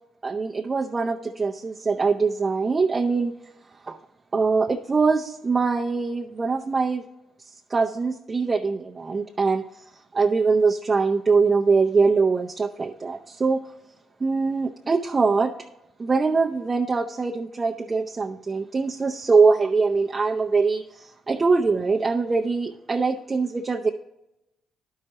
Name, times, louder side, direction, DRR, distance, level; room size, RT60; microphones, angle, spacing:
voice 1, 0.2-3.3 3.8-4.0 4.3-7.0 7.4-9.9 10.1-13.6 14.2-15.5 16.0-23.9, right 4 dB, 35° right, 1 dB, 0.6 m, -23 dB
11.5 x 5.7 x 2.9 m, 0.89 s
supercardioid pair, 60°, 0 cm